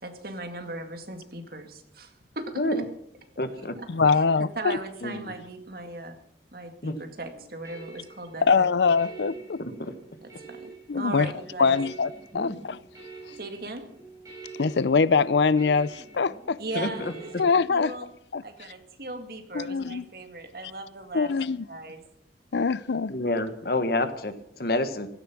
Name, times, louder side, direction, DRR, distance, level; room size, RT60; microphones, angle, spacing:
voice 1, 0.0-2.8 3.8-4.2 4.6-6.1 6.5-8.7 10.2-11.8 13.4-13.9 16.6-18.1 18.4-21.3 21.7-22.0, right 2 dB, 55° right, 2.1 m, -38 dB
voice 2, 3.4-3.7 5.0-5.3 6.8-6.9 9.6-9.9 12.3-12.6 16.7-17.1 23.1-25.1, left 1 dB, 55° left, 1.4 m, -28 dB
voice 3, 3.9-4.8 8.4-9.6 10.9-11.3 11.6-12.1 12.3-12.8 14.6-16.6 17.4-17.9 18.3-18.4 19.5-20.0 21.1-21.6 22.5-23.1, left 5 dB, 75° left, 0.5 m, -23 dB
sound 1, 7.0-17.5, right 4 dB, 15° right, 6.7 m, -46 dB
16.5 x 14.0 x 6.0 m
head